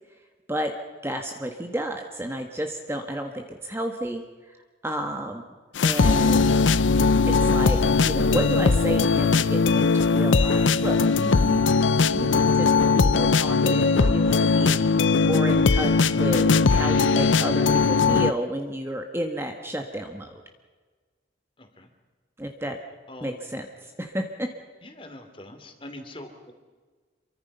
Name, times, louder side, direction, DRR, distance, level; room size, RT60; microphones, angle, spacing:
voice 1, 1.0-4.2 4.8-5.4 5.8-6.6 7.3-11.6 12.1-20.4 22.4-22.8 23.2-24.5, right 1 dB, 15° right, 4 dB, 1.5 m, -31 dB
sound 1, 5.8-18.3, left 4 dB, 85° left, 0.7 m, -20 dB
voice 2, 21.6-21.9 23.1-23.4 24.8-26.5, left 1 dB, 30° left, 6 dB, 2.8 m, -43 dB
28.0 x 23.5 x 5.6 m, 1.4 s
head